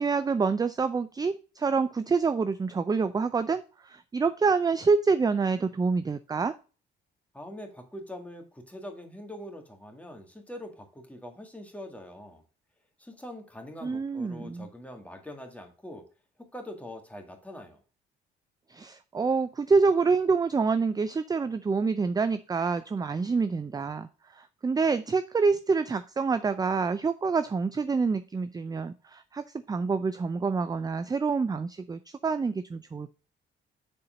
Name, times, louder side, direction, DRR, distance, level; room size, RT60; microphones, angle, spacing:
voice 1, 0.0-6.5 13.8-14.7 18.7-33.1, right 4 dB, 20° right, 12 dB, 0.4 m, -27 dB
voice 2, 7.3-12.4 13.0-16.1 16.5-17.8, left 1 dB, 5° left, 3 dB, 1.9 m, -43 dB
6.8 x 4.3 x 5.1 m, 0.34 s
cardioid pair, 90°, 20 cm